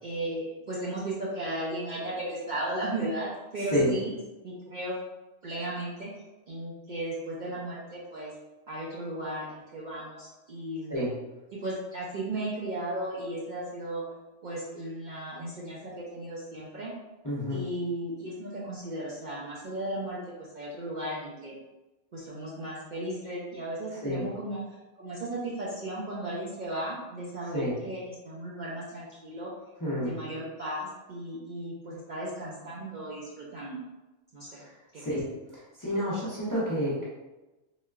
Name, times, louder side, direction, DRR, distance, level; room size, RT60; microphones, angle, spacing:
voice 1, 0.0-4.1 4.4-4.9 5.4-6.1 6.5-8.3 8.7-11.0 11.6-14.0 14.4-16.9 17.5-21.5 22.1-24.6 25.0-29.5 30.0-33.8 34.3-34.6 34.9-35.0, right 1 dB, 55° right, -6 dB, 0.5 m, -35 dB
voice 2, 17.2-17.6 24.0-24.3 27.5-27.7 29.8-30.1 34.6-34.7 35.0-35.2 35.5-37.0, equal, 20° left, -8 dB, 0.5 m, -29 dB
3.8 x 2.1 x 2.3 m, 1.1 s
omnidirectional pair, 1.2 m